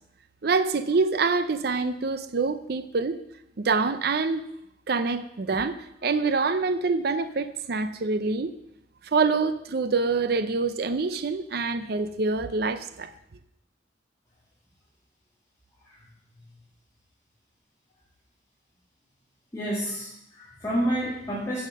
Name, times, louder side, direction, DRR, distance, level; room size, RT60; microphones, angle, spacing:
voice 1, 0.4-3.2 3.6-4.4 4.9-8.5 9.0-13.1, right 4 dB, 55° right, 11 dB, 0.5 m, -26 dB
voice 2, 19.5-21.6, right 1 dB, 15° left, -7 dB, 1.8 m, -29 dB
9.9 x 5.8 x 7.5 m, 0.79 s
head